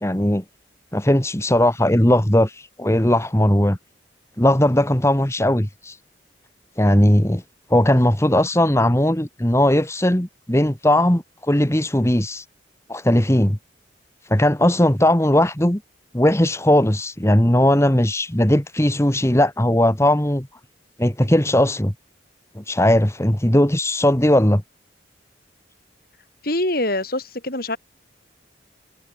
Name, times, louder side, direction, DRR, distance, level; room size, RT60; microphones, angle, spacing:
voice 1, 0.0-0.4 0.9-3.8 4.4-6.0 6.8-7.4 7.7-12.5 12.9-13.6 14.3-15.8 16.1-20.5 21.0-21.9 22.6-24.6, left 1 dB, 15° left, 1.7 m, -18 dB
voice 2, 26.4-27.8, left 1 dB, 50° left, 5.6 m, -24 dB
head